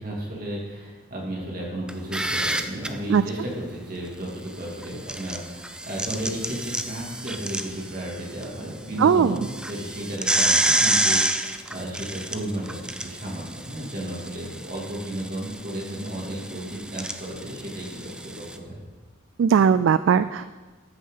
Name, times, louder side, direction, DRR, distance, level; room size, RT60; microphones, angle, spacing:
voice 1, 0.0-18.8, right 1 dB, 45° right, -3 dB, 2.8 m, -33 dB
sound 1, 1.9-2.9 4.8-8.4 8.8-8.9 9.4-18.6, right 1 dB, 5° right, 0.4 m, -28 dB
voice 2, 9.0-9.4 19.4-20.5, right 7 dB, 75° right, 13 dB, 0.3 m, -18 dB
14.0 x 6.5 x 5.6 m, 1.3 s
head